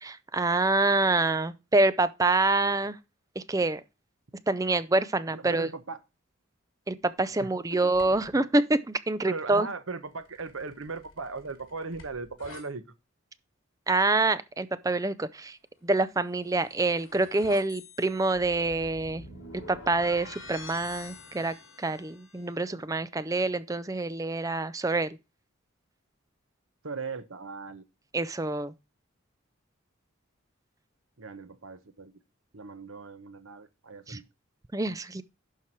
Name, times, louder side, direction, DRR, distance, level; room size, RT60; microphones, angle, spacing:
voice 1, 0.0-3.0 3.4-3.8 4.5-5.7 6.9-8.8 9.1-9.7 13.9-15.6 15.8-19.2 19.7-25.2 28.1-28.7 34.1-34.2 34.7-35.2, right 2 dB, 15° right, 0.4 m, -26 dB
voice 2, 5.3-6.0 7.4-8.5 9.3-12.8 26.8-27.8 31.2-32.1 32.5-34.2, right 4 dB, 75° right, 1.0 m, -39 dB
sound 1, 7.9-8.4 10.2-12.6 16.1-22.5, left 3 dB, 70° left, 2.8 m, -47 dB
11.5 x 4.7 x 4.5 m
head